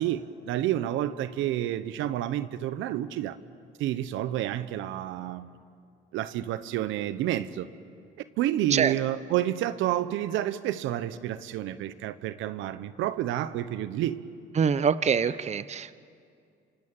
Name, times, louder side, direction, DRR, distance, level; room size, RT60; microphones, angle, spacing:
voice 1, 0.0-3.4 3.8-5.5 6.1-7.7 8.4-14.2, right 12 dB, 80° right, 1.1 m, -29 dB
voice 2, 14.6-15.9, right 6 dB, 35° right, 0.8 m, -25 dB
26.5 x 26.0 x 8.8 m
supercardioid pair, 80°, 20 cm